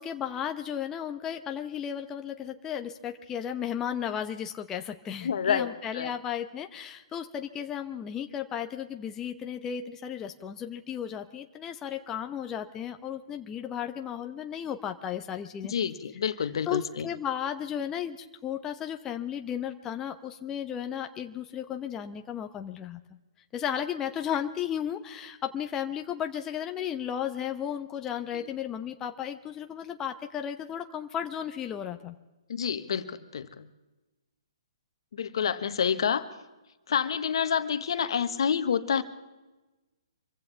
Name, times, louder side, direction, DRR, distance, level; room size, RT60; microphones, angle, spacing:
voice 1, 0.0-15.7 16.7-23.0 23.5-32.1, left 9 dB, 20° left, 6 dB, 0.8 m, -34 dB
voice 2, 5.2-6.1 15.6-17.1 28.3-28.4 32.5-33.7 35.1-36.3 36.9-39.0, left 7 dB, 65° left, 10 dB, 1.3 m, -28 dB
25.5 x 15.5 x 3.4 m, 1.1 s
hypercardioid pair, 135°, 3 cm